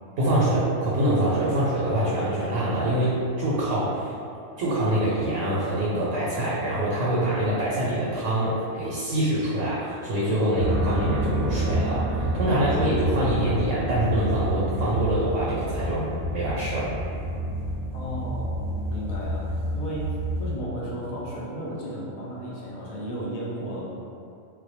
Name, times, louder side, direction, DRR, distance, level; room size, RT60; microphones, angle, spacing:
voice 1, 0.2-4.1 4.6-17.0, right 1 dB, 85° right, -7 dB, 0.9 m, -25 dB
sound 1, 10.6-20.5, right 1 dB, 40° right, 0.7 m, -28 dB
voice 2, 17.9-24.1, right 1 dB, 75° left, -6 dB, 0.3 m, -34 dB
2.2 x 2.1 x 2.7 m, 2.6 s
omnidirectional pair, 1.3 m